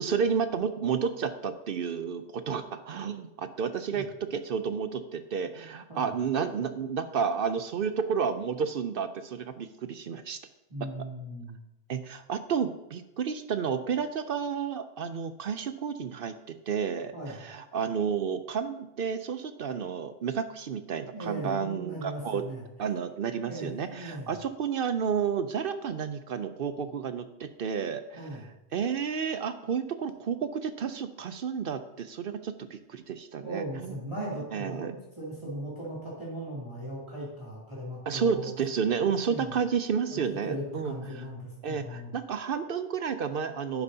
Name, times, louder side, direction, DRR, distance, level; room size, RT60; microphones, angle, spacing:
voice 1, 0.0-10.4 11.9-22.4 22.8-28.2 28.7-34.0 34.5-34.9 38.1-40.9 41.6-43.8, right 6 dB, 60° right, 10 dB, 0.7 m, -31 dB
voice 2, 10.7-11.6 17.1-17.4 21.1-22.6 23.4-24.3 28.2-28.4 33.4-38.5 39.2-39.5 40.1-42.1, right 1 dB, 25° right, -8 dB, 2.8 m, -38 dB
10.5 x 10.5 x 2.8 m, 0.92 s
omnidirectional pair, 1.2 m